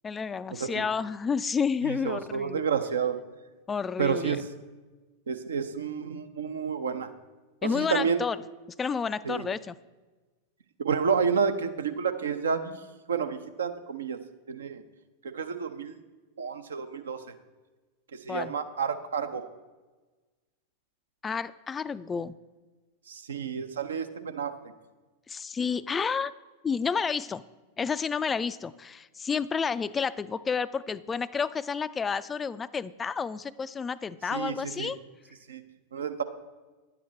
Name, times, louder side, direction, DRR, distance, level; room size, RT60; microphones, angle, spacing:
voice 1, 0.0-2.6 3.7-4.4 7.6-8.4 8.8-9.8 18.3-18.5 21.2-22.4 25.3-26.3 26.6-27.4 27.8-35.0, left 6 dB, 15° left, 15 dB, 0.3 m, -30 dB
voice 2, 1.8-3.2 4.0-4.4 5.3-7.1 7.7-8.2 9.2-9.4 10.8-12.7 13.1-14.2 14.5-14.8 15.2-15.9 16.4-17.2 18.3-19.4 23.1-24.7 34.3-34.9 35.5-35.6 35.9-36.2, right 6 dB, 65° right, 9 dB, 0.7 m, -30 dB
10.5 x 8.5 x 4.1 m, 1.3 s
figure-of-eight pair, 90°, 0 cm